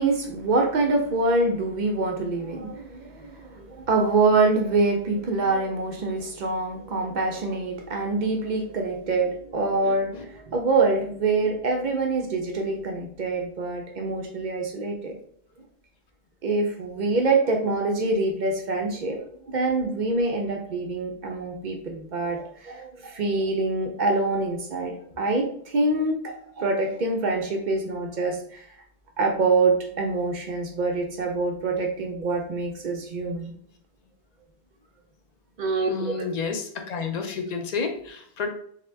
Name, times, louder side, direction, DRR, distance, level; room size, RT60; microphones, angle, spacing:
voice 1, 0.0-15.2 16.4-19.2 19.5-28.6 29.2-33.5 35.6-36.1, right 3 dB, 55° right, 2 dB, 0.6 m, -25 dB
voice 2, 35.9-38.5, left 5 dB, 55° left, 4 dB, 0.5 m, -30 dB
2.8 x 2.1 x 3.2 m, 0.62 s
omnidirectional pair, 1.1 m